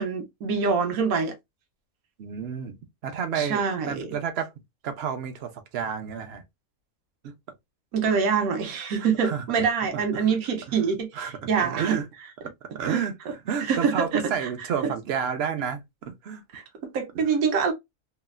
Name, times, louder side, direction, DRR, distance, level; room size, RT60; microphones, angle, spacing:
voice 1, 0.0-1.3 3.4-4.1 7.9-12.0 12.9-13.0 13.7-14.5 14.8-14.9 16.5-17.7, right 6 dB, 85° right, 1.1 m, -25 dB
voice 2, 2.2-2.8 3.0-4.5 4.8-6.4 7.2-7.3 8.1-8.2 9.0-9.5 9.9-10.4 10.7-10.8 11.1-12.1 12.4-12.5 12.7-16.4 17.1-17.4, right 7 dB, 60° right, 0.7 m, -31 dB
3.0 x 2.0 x 2.2 m
omnidirectional pair, 1.5 m